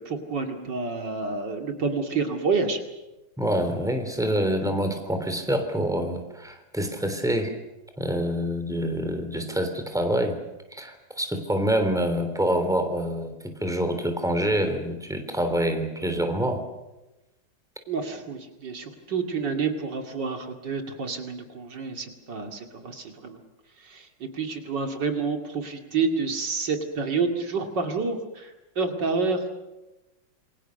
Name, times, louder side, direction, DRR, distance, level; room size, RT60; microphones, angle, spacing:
voice 1, 0.0-2.8 17.9-23.4 23.8-29.5, right 4 dB, 70° right, 5 dB, 3.1 m, -29 dB
voice 2, 3.4-7.5 8.0-10.4 10.7-16.6, equal, ahead, 6 dB, 3.3 m, -26 dB
27.5 x 23.5 x 6.6 m, 1.0 s
omnidirectional pair, 2.0 m